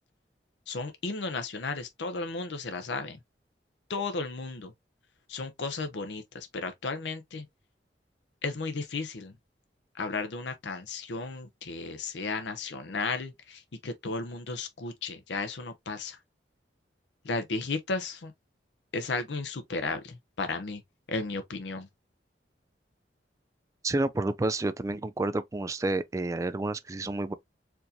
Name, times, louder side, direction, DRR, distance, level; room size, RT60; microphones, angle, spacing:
voice 1, 0.7-3.2 3.9-4.7 5.3-7.4 8.4-9.3 10.0-16.2 17.2-18.3 18.9-20.8 21.1-21.9, left 3 dB, 80° left, 0.7 m, -34 dB
voice 2, 23.8-27.3, right 2 dB, 20° right, 0.3 m, -30 dB
4.5 x 2.6 x 2.6 m
head